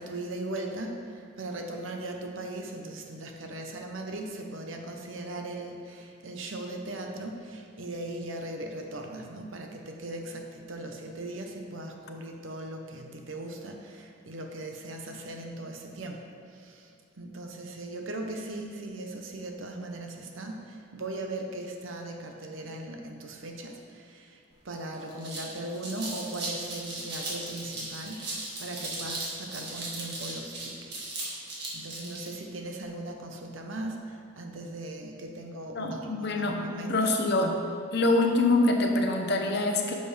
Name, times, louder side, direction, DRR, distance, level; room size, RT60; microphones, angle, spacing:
voice 1, 0.0-16.2 16.5-16.9 17.2-24.4 24.6-30.9 31.3-31.4 31.7-37.1, right 1 dB, 75° right, 3 dB, 0.9 m, -38 dB
sound 1, 24.5-24.6 24.9-32.3, right 2 dB, 55° right, 1.9 m, -37 dB
voice 2, 35.7-37.5 37.9-39.9, left 2 dB, 55° left, 3 dB, 0.9 m, -25 dB
10.0 x 6.8 x 3.4 m, 2.5 s
head